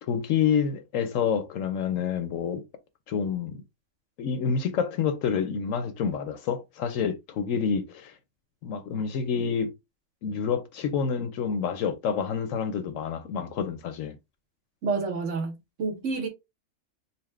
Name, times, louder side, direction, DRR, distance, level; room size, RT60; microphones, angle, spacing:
voice 1, 0.0-2.6 3.1-3.5 4.2-8.1 8.6-9.7 10.2-14.2, left 7 dB, 70° left, 0.9 m, -28 dB
voice 2, 14.8-16.3, right 4 dB, 60° right, 1.2 m, -29 dB
4.2 x 2.1 x 3.1 m
omnidirectional pair, 1.5 m